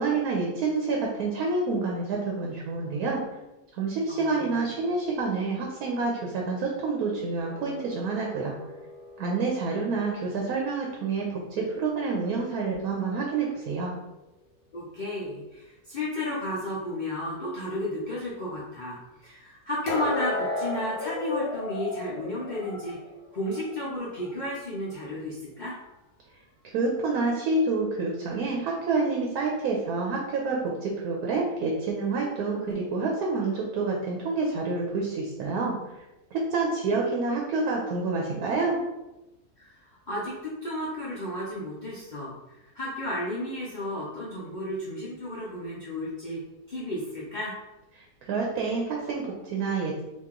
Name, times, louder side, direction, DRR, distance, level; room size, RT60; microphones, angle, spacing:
voice 1, 0.0-3.2 3.7-8.6 9.2-13.9 26.7-35.8 36.3-38.8 48.3-50.0, right 3 dB, 75° right, -1 dB, 1.1 m, -28 dB
voice 2, 4.1-4.6 14.7-23.0 23.3-25.8 39.6-47.5, left 1 dB, 65° left, -6 dB, 0.4 m, -33 dB
sound 1, 7.4-10.5 19.9-23.8 24.2-24.4 25.0-25.1, left 2 dB, 80° left, 1.2 m, -35 dB
2.9 x 2.6 x 3.6 m, 0.98 s
omnidirectional pair, 1.6 m